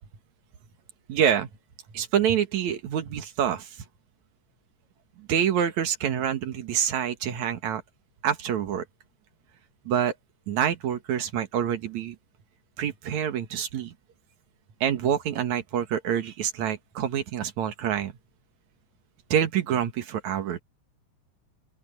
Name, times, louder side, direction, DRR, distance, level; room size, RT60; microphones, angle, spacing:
voice 1, 1.1-1.5 1.9-3.7 5.2-7.8 8.2-8.8 9.9-10.1 10.5-12.2 12.8-13.9 14.8-18.1 19.3-20.6, right 9 dB, 75° right, 2.8 m, -26 dB
open air
omnidirectional pair, 3.3 m